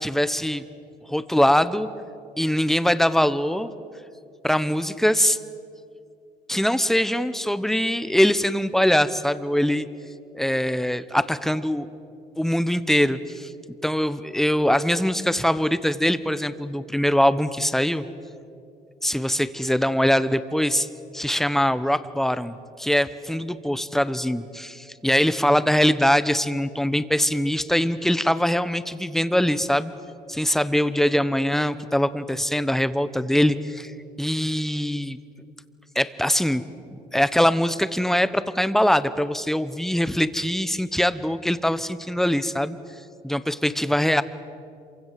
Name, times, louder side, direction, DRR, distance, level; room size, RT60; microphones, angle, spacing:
voice 1, 0.0-0.7 1.1-1.9 2.4-3.7 4.4-5.4 6.5-9.9 10.3-11.9 12.4-13.5 13.8-18.0 19.0-20.9 21.1-29.9 30.3-33.9 34.2-35.2 35.9-36.6 36.9-42.8 43.2-44.2, equal, ahead, 13 dB, 1.1 m, -22 dB
27.0 x 24.0 x 7.6 m, 2.6 s
cardioid pair, 110°, 17 cm